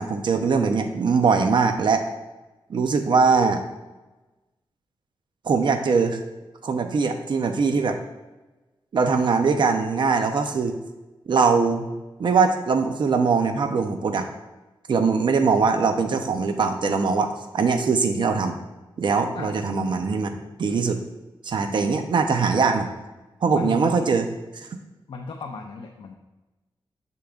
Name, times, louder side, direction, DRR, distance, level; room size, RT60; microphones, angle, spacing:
voice 1, 0.0-2.0 2.7-3.6 5.5-6.2 6.6-8.0 8.9-10.8 11.3-11.9 12.2-14.3 14.9-17.3 17.5-18.5 19.0-21.0 21.4-22.9 23.4-24.3 24.5-24.7, right 5 dB, 55° right, 6 dB, 0.6 m, -21 dB
voice 2, 23.5-24.0 25.1-26.2, left 3 dB, 65° left, 2 dB, 0.5 m, -35 dB
6.8 x 6.5 x 2.4 m, 1.1 s
wide cardioid pair, 160°, 9 cm